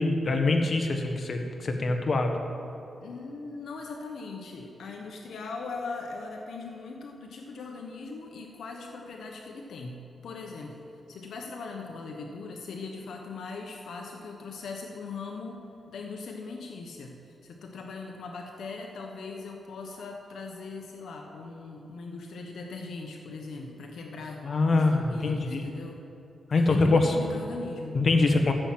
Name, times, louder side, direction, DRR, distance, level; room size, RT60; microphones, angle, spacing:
voice 1, 0.0-2.4 24.4-25.6 26.5-27.1 27.9-28.5, left 3 dB, 55° left, 4 dB, 1.4 m, -24 dB
voice 2, 3.0-26.0 26.5-28.0, left 4 dB, 85° left, 2 dB, 1.0 m, -40 dB
13.5 x 7.5 x 7.5 m, 2.8 s
cardioid pair, 80°, 0 cm